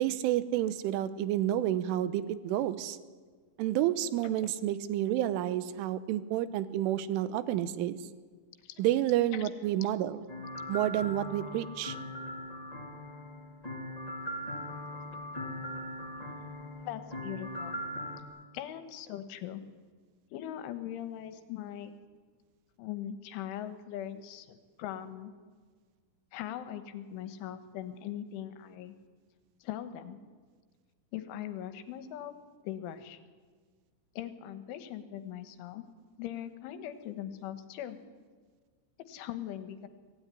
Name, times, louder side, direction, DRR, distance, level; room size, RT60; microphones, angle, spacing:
voice 1, 0.0-3.0 3.6-8.0 8.8-10.2 10.7-12.0, right 12 dB, 80° right, 13 dB, 3.3 m, -30 dB
sound 1, 10.3-18.2, left 1 dB, 30° left, 0.7 m, -40 dB
voice 2, 16.8-17.8 18.5-19.6 20.3-22.0 22.8-25.3 26.3-29.0 29.6-30.2 31.1-32.3 32.6-33.2 34.2-35.8 36.2-38.0 39.1-39.9, left 11 dB, 75° left, 10 dB, 3.5 m, -40 dB
24.0 x 17.0 x 9.8 m, 1.5 s
omnidirectional pair, 5.9 m